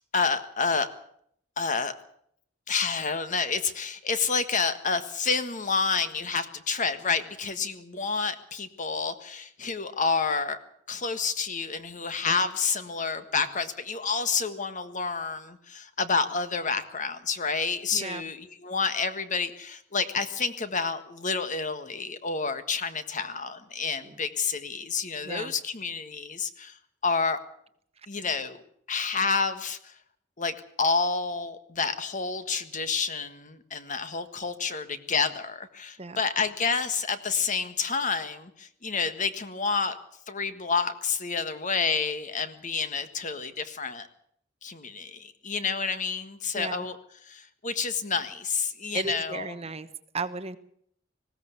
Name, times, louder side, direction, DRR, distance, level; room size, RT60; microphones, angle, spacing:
voice 1, 0.1-0.9 1.6-1.9 2.7-10.6 10.9-26.8 27.0-27.4 28.1-28.6 28.9-29.9 30.4-40.0 40.3-44.1 44.6-47.0 47.2-49.5, left 5 dB, 40° left, 10 dB, 1.6 m, -29 dB
voice 2, 17.9-18.2 24.0-24.2 25.2-25.5 36.0-36.2 46.5-46.9 48.9-49.9 50.1-50.6, right 3 dB, 30° right, 12 dB, 1.1 m, -34 dB
20.0 x 16.0 x 8.2 m, 0.67 s
head